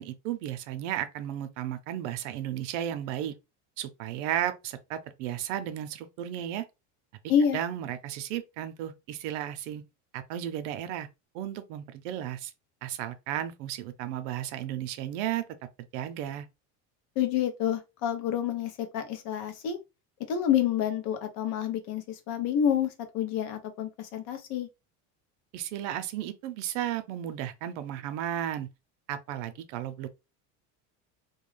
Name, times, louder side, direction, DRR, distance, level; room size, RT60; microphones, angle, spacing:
voice 1, 0.0-3.3 3.8-6.7 7.5-9.8 10.1-11.1 11.3-12.5 12.8-15.4 15.9-16.5 25.5-28.7 29.1-30.1, right 11 dB, 85° right, 0.6 m, -34 dB
voice 2, 17.2-19.8 20.3-24.7, left 9 dB, 60° left, 0.7 m, -28 dB
2.3 x 2.2 x 3.1 m
cardioid pair, 165°, 36 cm